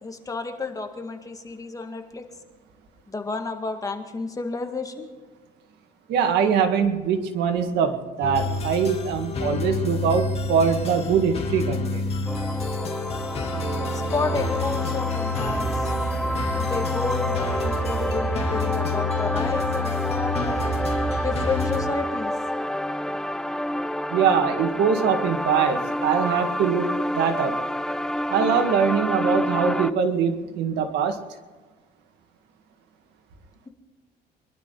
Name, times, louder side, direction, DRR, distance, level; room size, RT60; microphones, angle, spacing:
voice 1, 0.0-2.3 3.1-5.1 13.8-15.9 16.6-20.6 21.2-22.3, left 3 dB, 20° left, 5 dB, 1.9 m, -31 dB
voice 2, 6.1-12.1 24.1-27.6 28.3-31.2, right 6 dB, 85° right, 7 dB, 1.8 m, -23 dB
sound 1, 8.2-21.8, left 2 dB, 35° left, 2.7 m, -28 dB
sound 2, 12.3-29.9, left 1 dB, 5° left, 0.5 m, -28 dB
23.5 x 12.0 x 4.0 m, 1.3 s
cardioid pair, 110°, 17 cm